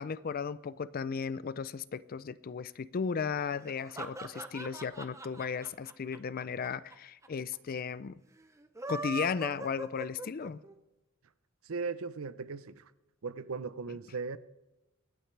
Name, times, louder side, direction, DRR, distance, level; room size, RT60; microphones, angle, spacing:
voice 1, 0.0-8.2 8.9-10.6, left 6 dB, 45° left, 0.4 m, -35 dB
sound 1, 3.6-6.9 7.2-7.3 7.5-7.6 8.6-10.7, right 2 dB, 15° right, 0.6 m, -41 dB
voice 2, 11.6-12.9 13.2-14.4, right 4 dB, 75° right, 0.6 m, -38 dB
24.5 x 9.1 x 3.3 m
head